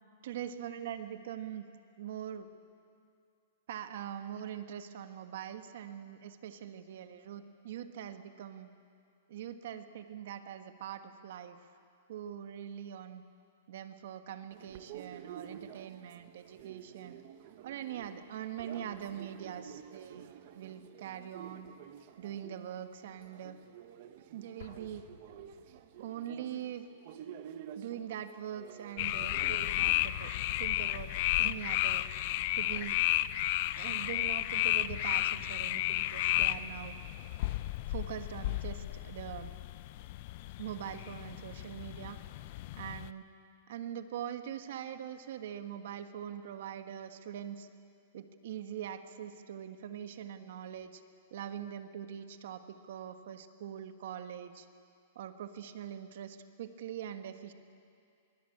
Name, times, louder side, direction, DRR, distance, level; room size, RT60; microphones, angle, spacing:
voice 1, 0.2-1.6 2.0-2.5 3.7-8.7 9.3-11.6 12.1-13.2 13.7-17.2 17.6-21.7 22.2-23.6 24.3-25.1 26.0-26.9 27.7-30.3 30.6-31.1 31.4-32.0 32.6-33.0 33.8-36.9 37.9-39.5 40.6-42.2 42.8-43.2 43.7-47.7 48.1-51.0 51.3-54.7 55.1-57.5, right 10 dB, 60° right, 9 dB, 1.5 m, -43 dB
sound 1, 14.5-30.0, right 9 dB, 40° right, 1.0 m, -50 dB
Explosion, 24.6-26.3, left 7 dB, 80° left, 2.0 m, -55 dB
sound 2, 29.0-43.1, left 15 dB, 40° left, 0.5 m, -33 dB
24.0 x 22.5 x 8.8 m, 2.4 s
supercardioid pair, 165°, 0 cm